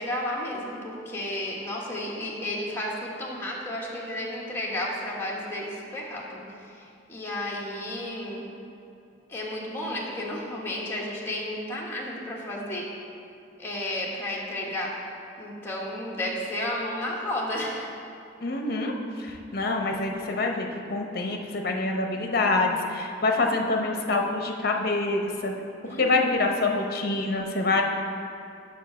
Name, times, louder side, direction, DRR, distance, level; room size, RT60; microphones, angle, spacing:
voice 1, 0.0-6.4 7.1-8.4 9.3-12.8 13.6-14.9 15.4-17.9 25.9-26.1, left 1 dB, 15° left, -4 dB, 1.4 m, -32 dB
voice 2, 18.4-25.5 25.8-27.8, left 3 dB, 50° left, 2 dB, 0.9 m, -26 dB
7.2 x 5.9 x 6.2 m, 2.7 s
head